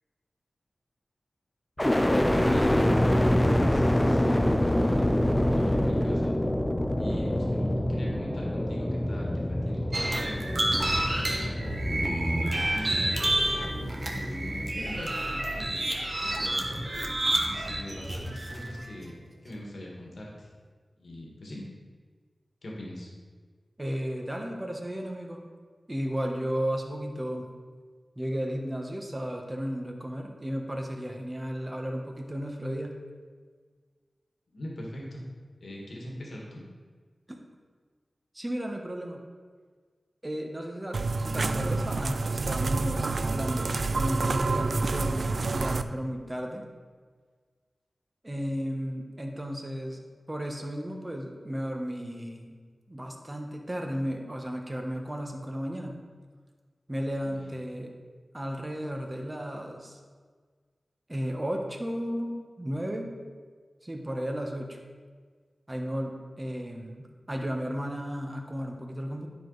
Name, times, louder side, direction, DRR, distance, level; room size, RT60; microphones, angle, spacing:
sound 1, 1.8-15.8 16.3-17.0, left 1 dB, 15° left, 0.6 m, -26 dB
voice 1, 2.3-6.3 7.0-13.0 13.8-15.8 16.2-16.8 17.4-20.5 21.0-21.6 22.6-23.1 34.5-35.2 35.6-36.6 57.2-57.4, left 1 dB, 75° left, -3 dB, 1.7 m, -41 dB
sound 2, 9.9-18.8, right 1 dB, 45° right, 1.1 m, -29 dB
voice 2, 23.8-25.5 25.9-27.5 28.2-33.0 37.3-37.4 38.3-39.2 40.2-46.6 48.2-50.0 50.3-52.5 52.9-56.0 56.9-57.9 58.3-60.0 61.1-63.2 63.8-64.8 65.7-69.3, equal, 25° right, 2 dB, 1.2 m, -34 dB
sound 3, 40.9-45.8, right 3 dB, 70° right, 0.3 m, -28 dB
10.0 x 4.9 x 4.1 m, 1.5 s
wide cardioid pair, 60°, 0 cm